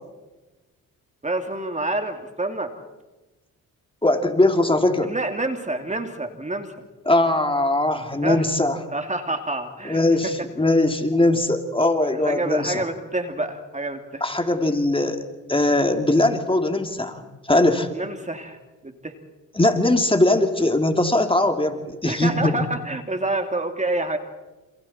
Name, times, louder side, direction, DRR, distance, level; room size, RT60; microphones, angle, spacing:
voice 1, 1.2-2.7 5.0-6.7 8.2-8.5 8.9-10.3 12.2-14.2 17.9-18.6 18.8-19.1 22.0-24.2, right 2 dB, 20° right, 6 dB, 2.7 m, -27 dB
voice 2, 4.0-5.1 7.1-8.8 9.8-12.8 14.2-15.2 15.5-17.9 19.5-22.6, left 2 dB, 15° left, 5 dB, 2.8 m, -20 dB
29.0 x 28.0 x 4.4 m, 1.1 s
cardioid pair, 70°, 34 cm